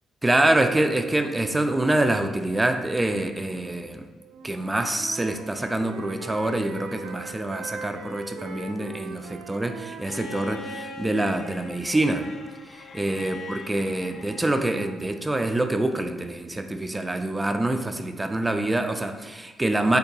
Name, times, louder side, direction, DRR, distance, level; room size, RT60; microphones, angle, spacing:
voice 1, 0.2-4.0 4.4-12.3 12.9-20.0, right 1 dB, 15° right, 7 dB, 0.3 m, -25 dB
Wind instrument woodwind instrument, 4.2-10.9, right 4 dB, 90° right, 0.4 m, -40 dB
Bowed string instrument, 10.0-15.1 16.5-16.6, left 2 dB, 50° left, 0.5 m, -41 dB
5.3 x 3.8 x 2.3 m, 1.3 s
cardioid pair, 90°, 0 cm